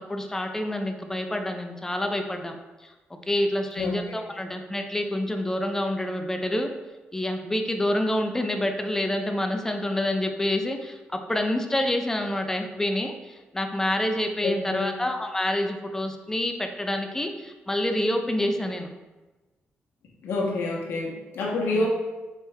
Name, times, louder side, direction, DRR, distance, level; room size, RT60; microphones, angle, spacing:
voice 1, 0.0-2.6 2.8-2.9 3.3-6.7 7.1-18.9, left 1 dB, 10° left, 5 dB, 0.5 m, -27 dB
voice 2, 3.8-4.2 14.4-15.0 20.2-21.9, left 2 dB, 90° left, -2 dB, 1.0 m, -28 dB
4.4 x 3.3 x 3.5 m, 1.2 s
cardioid pair, 95°, 4 cm